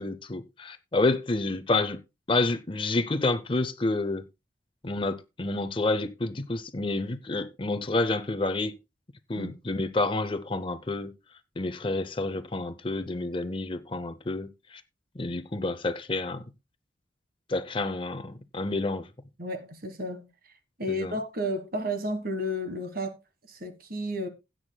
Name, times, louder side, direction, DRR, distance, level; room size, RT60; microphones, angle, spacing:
voice 1, 0.0-2.0 2.3-4.3 4.8-8.7 9.3-11.1 11.6-14.8 15.1-16.4 17.5-19.1 20.9-21.2, left 2 dB, 25° left, 0.6 m, -29 dB
voice 2, 19.4-20.3 20.8-23.2 23.5-24.3, equal, 50° right, 1.5 m, -32 dB
16.0 x 9.1 x 2.3 m
head